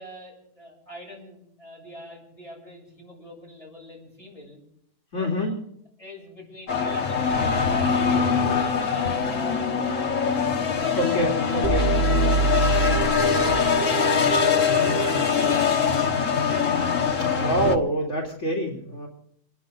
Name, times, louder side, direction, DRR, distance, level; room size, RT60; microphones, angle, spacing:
voice 1, 0.0-4.6 5.2-5.5 6.0-8.0 8.3-10.7 11.3-11.5, left 1 dB, 25° left, -4 dB, 8.1 m, -43 dB
voice 2, 5.1-5.6 10.9-11.8 17.3-19.1, right 1 dB, 75° left, -3 dB, 3.4 m, -26 dB
sound 1, 6.7-17.8, left 6 dB, 90° left, 1.6 m, -23 dB
sound 2, 11.6-16.4, right 4 dB, 30° right, 2.7 m, -26 dB
29.5 x 11.0 x 3.9 m, 0.73 s
omnidirectional pair, 1.3 m